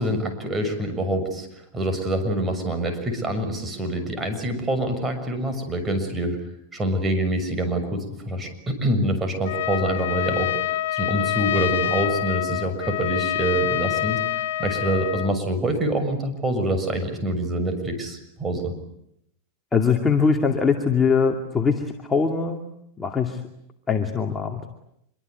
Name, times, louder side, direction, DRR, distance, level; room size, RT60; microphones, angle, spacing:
voice 1, 0.0-1.5 1.7-6.4 6.7-10.5 10.9-18.7, right 1 dB, 20° right, 7 dB, 6.7 m, -26 dB
Trumpet, 9.4-15.3, left 14 dB, 80° left, 1.6 m, -26 dB
voice 2, 19.7-22.6 23.0-23.4 23.9-24.6, left 5 dB, 15° left, 2 dB, 2.5 m, -22 dB
26.5 x 23.0 x 9.6 m, 0.77 s
supercardioid pair, 125°, 0 cm